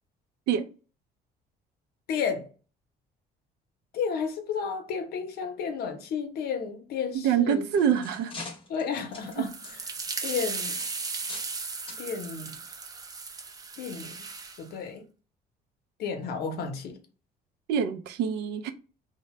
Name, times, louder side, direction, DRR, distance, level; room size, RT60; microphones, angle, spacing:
voice 1, 2.1-2.5 3.9-7.7 8.7-9.5 10.2-10.8 12.0-12.6 13.8-14.1 14.6-15.1 16.0-17.0, left 6 dB, 70° left, 0.7 m, -32 dB
voice 2, 7.1-8.3 9.4-9.5 17.7-18.7, right 8 dB, 85° right, 0.4 m, -25 dB
sound 1, 7.3-11.6 11.9-12.1 12.8-12.9 13.4-13.5, left 3 dB, 30° left, 0.7 m, -45 dB
sound 2, 9.2-14.6, right 4 dB, 20° right, 0.4 m, -36 dB
2.7 x 2.1 x 3.0 m
cardioid pair, 110°, 17 cm